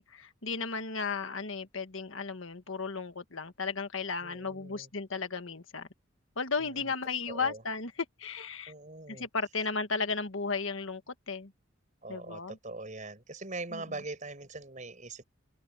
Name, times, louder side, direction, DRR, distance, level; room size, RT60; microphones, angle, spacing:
voice 1, 0.0-5.9 6.4-7.9 8.2-8.7 9.1-11.5 12.1-12.6 13.7-13.8, left 4 dB, 75° left, 1.6 m, -35 dB
voice 2, 4.2-4.9 6.6-6.9 7.3-7.6 8.7-9.3 12.0-15.3, right 2 dB, 35° right, 5.2 m, -42 dB
head